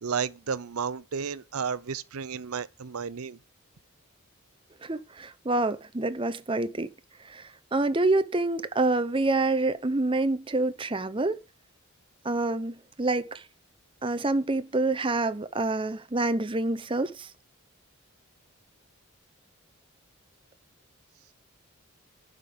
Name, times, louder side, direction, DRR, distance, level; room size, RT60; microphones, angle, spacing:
voice 1, 0.0-3.4, right 6 dB, 80° right, 0.6 m, -32 dB
voice 2, 4.8-6.9 7.3-7.4 7.7-11.4 12.2-13.4 14.0-17.3, right 2 dB, 25° right, 0.7 m, -27 dB
11.5 x 5.2 x 8.1 m
head